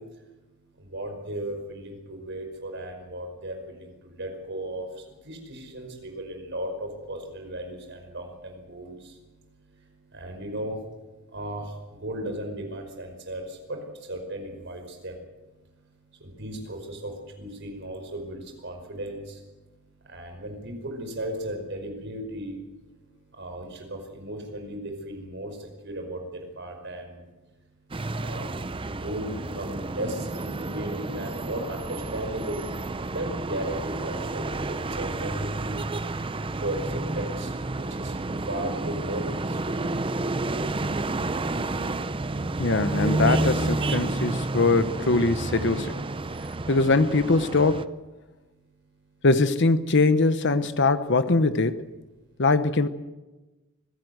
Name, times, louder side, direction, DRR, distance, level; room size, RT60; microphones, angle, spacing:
voice 1, 0.9-3.5 4.1-4.9 5.3-9.0 10.1-10.8 11.3-11.6 12.0-13.8 14.1-15.1 16.4-19.2 20.1-22.6 23.4-25.5 25.8-26.2 26.6-27.1 28.2-28.5 28.9-29.3 29.6-32.7 33.1-35.7 36.4-37.5 37.8-38.1 38.5-39.6, right 1 dB, 55° right, 4 dB, 5.2 m, -35 dB
sound 1, 27.9-47.8, right 2 dB, 25° right, 0.6 m, -30 dB
voice 2, 42.6-45.9 46.7-47.9 49.2-51.8 52.4-52.9, left 3 dB, 55° left, 12 dB, 1.0 m, -22 dB
24.5 x 17.0 x 8.0 m, 1.1 s
head